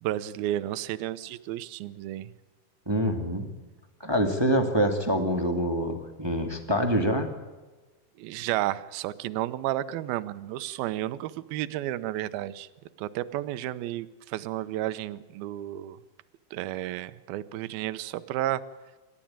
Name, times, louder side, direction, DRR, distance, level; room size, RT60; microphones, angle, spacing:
voice 1, 0.0-2.3 8.2-12.7 13.0-16.0 16.5-18.6, right 14 dB, 75° right, 13 dB, 2.6 m, -32 dB
voice 2, 2.8-3.5 4.0-7.3, equal, 15° right, 5 dB, 0.9 m, -25 dB
28.5 x 14.0 x 8.9 m, 1.2 s
omnidirectional pair, 4.6 m